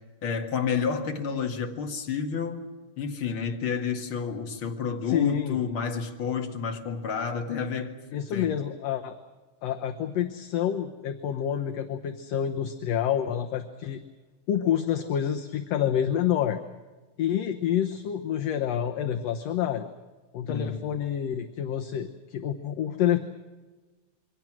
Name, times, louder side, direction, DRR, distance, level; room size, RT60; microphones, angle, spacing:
voice 1, 0.2-2.6 3.0-8.5 20.5-20.8, left 6 dB, 45° left, 3 dB, 2.5 m, -30 dB
voice 2, 5.1-5.6 8.1-9.2 9.6-14.0 14.5-16.6 17.2-19.9 20.3-23.2, left 10 dB, 65° left, 5 dB, 1.9 m, -28 dB
27.5 x 23.5 x 6.1 m, 1.3 s
omnidirectional pair, 3.5 m